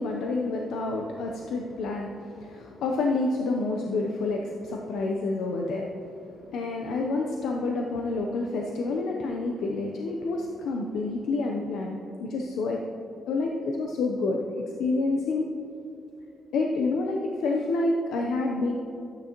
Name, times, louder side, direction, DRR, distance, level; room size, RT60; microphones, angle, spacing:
voice 1, 0.0-12.8 13.3-15.5 16.5-18.7, left 3 dB, 90° left, 1 dB, 0.7 m, -28 dB
12.5 x 8.9 x 3.0 m, 2.9 s
cardioid pair, 160°, 0 cm